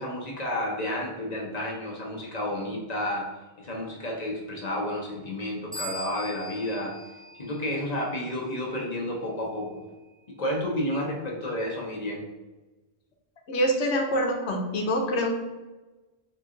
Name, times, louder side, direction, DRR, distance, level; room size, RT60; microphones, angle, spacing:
voice 1, 0.0-6.9 7.4-9.8 10.4-12.2, left 1 dB, 40° left, -2 dB, 0.8 m, -31 dB
sound 1, 5.7-8.2, equal, 5° left, 0.9 m, -41 dB
voice 2, 13.5-15.4, equal, 80° left, 2 dB, 1.0 m, -25 dB
3.9 x 2.9 x 3.7 m, 1.2 s
omnidirectional pair, 1.1 m